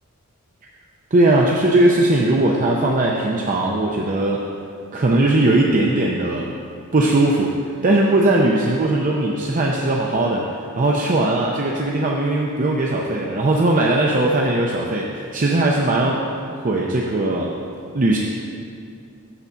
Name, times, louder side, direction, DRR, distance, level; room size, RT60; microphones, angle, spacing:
voice 1, 1.1-4.4 4.9-6.5 6.9-7.5 7.8-10.5 10.8-16.4 16.6-17.5 17.9-18.2, right 2 dB, 35° right, -1 dB, 0.6 m, -19 dB
10.0 x 4.0 x 7.2 m, 2.5 s
head